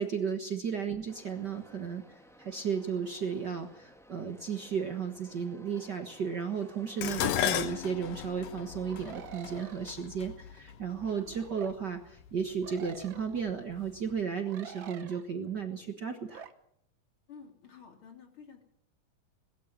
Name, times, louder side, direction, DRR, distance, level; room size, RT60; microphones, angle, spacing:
voice 1, 0.0-16.4, right 6 dB, 50° right, 5 dB, 1.3 m, -34 dB
sound 1, 1.1-9.9, equal, ahead, 1.0 m, -55 dB
Dishes pots and pans, 7.0-11.4 12.3-12.7 13.0-13.9 14.1-14.2, left 11 dB, 85° left, 2.7 m, -34 dB
sound 2, 8.8-9.9 11.0-11.7 12.6-13.5 14.5-15.3 16.3-16.5, right 8 dB, 85° right, 1.0 m, -47 dB
voice 2, 17.3-18.6, left 6 dB, 40° left, 3 dB, 3.7 m, -51 dB
21.5 x 13.5 x 9.4 m, 0.73 s
omnidirectional pair, 3.9 m